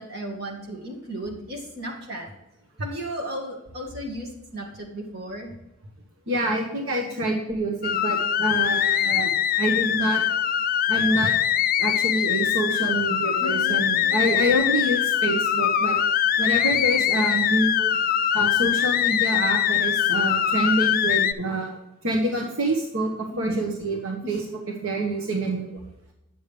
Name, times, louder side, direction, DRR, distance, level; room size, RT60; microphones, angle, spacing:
voice 1, 0.0-2.3 2.8-5.5 13.4-14.4 23.3-23.6 24.2-24.4, right 1 dB, 45° right, -1 dB, 2.0 m, -35 dB
voice 2, 6.3-9.3 9.6-10.2 10.9-11.3 11.8-16.0 16.4-18.0 18.3-21.8 22.0-24.4 24.8-25.8, right 1 dB, 75° right, 1 dB, 1.2 m, -26 dB
sound 1, 7.8-21.3, left 10 dB, 40° left, 0.3 m, -23 dB
9.6 x 6.9 x 3.3 m, 0.94 s
head